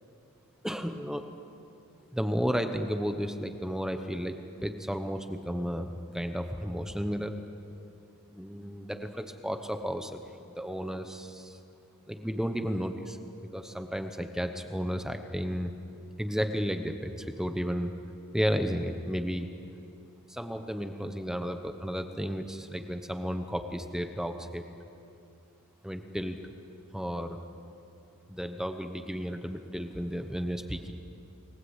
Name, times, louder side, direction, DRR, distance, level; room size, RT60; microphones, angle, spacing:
voice 1, 0.6-1.3 2.1-4.4 4.6-5.9 6.1-7.3 8.3-10.2 10.5-11.6 12.1-13.2 13.5-15.7 16.2-17.9 18.3-19.5 20.3-24.6 25.8-26.4 26.9-27.4 28.3-30.9, equal, ahead, 6 dB, 1.0 m, -33 dB
29.0 x 19.5 x 8.2 m, 2.6 s
head